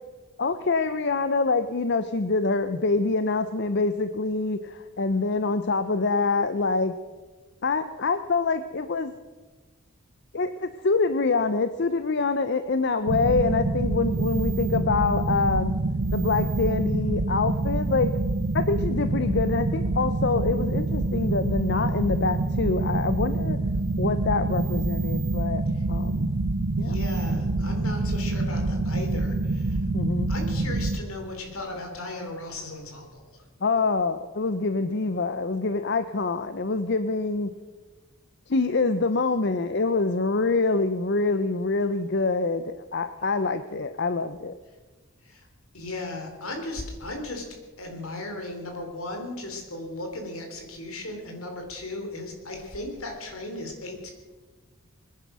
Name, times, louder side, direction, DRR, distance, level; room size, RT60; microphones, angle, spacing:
voice 1, 0.4-6.9 7.6-9.1 10.3-15.7 16.1-18.1 18.5-23.6 24.0-26.3 26.8-27.0 29.9-30.3 33.6-37.5 38.5-44.5, left 3 dB, 50° left, 11 dB, 0.6 m, -25 dB
sound 1, 13.1-31.0, right 2 dB, 70° right, 0.8 m, -26 dB
voice 2, 26.8-29.8 30.3-33.4 45.2-45.5 45.7-47.4 47.8-54.1, left 2 dB, 70° left, 3 dB, 3.6 m, -36 dB
22.0 x 10.5 x 6.2 m, 1.3 s
head